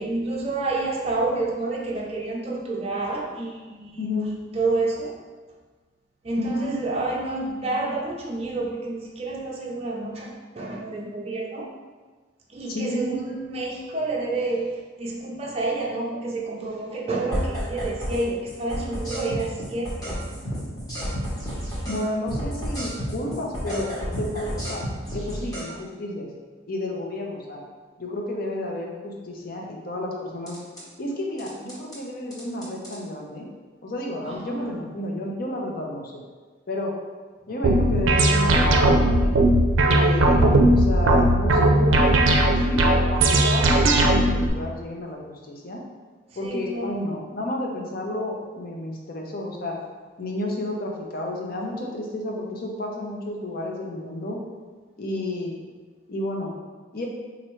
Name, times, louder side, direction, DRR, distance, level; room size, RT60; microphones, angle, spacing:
voice 1, 0.0-4.0 4.5-5.1 6.2-11.7 12.5-14.7 15.0-20.2 34.2-34.7 46.4-47.0, right 2 dB, 30° right, -3 dB, 0.5 m, -29 dB
voice 2, 4.0-4.4 6.4-6.8 12.7-13.2 21.9-24.8 25.1-26.3 26.7-27.6 28.0-30.6 31.0-33.5 33.8-36.2 36.7-36.9 37.5-39.4 39.9-42.9 43.2-45.8 46.4-49.7 50.2-54.4 55.0-55.6 56.1-56.5 56.9-57.1, left 1 dB, 50° left, 0 dB, 0.6 m, -31 dB
sound 1, 17.3-18.2 18.5-22.0 22.3-25.7 30.5-30.8 31.4-32.0 32.3-33.0, equal, 20° left, 1.0 m, -31 dB
sound 2, 37.6-44.5, right 1 dB, 80° right, 0.4 m, -18 dB
4.3 x 2.6 x 3.0 m, 1.4 s
head